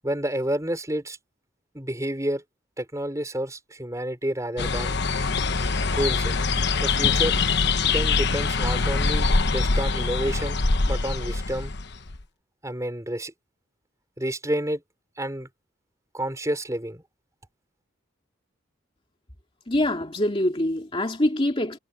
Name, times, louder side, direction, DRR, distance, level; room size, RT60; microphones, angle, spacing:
voice 1, 0.0-1.2 1.7-2.4 2.8-5.0 5.9-6.3 6.8-7.4 7.8-10.6 10.9-11.7 12.6-13.3 14.2-14.8 15.2-15.5 16.1-17.0, right 1 dB, 15° right, 5.4 m, -29 dB
sound 1, 4.6-12.2, left 4 dB, 55° left, 1.1 m, -24 dB
voice 2, 19.7-21.8, left 1 dB, 25° left, 2.5 m, -24 dB
head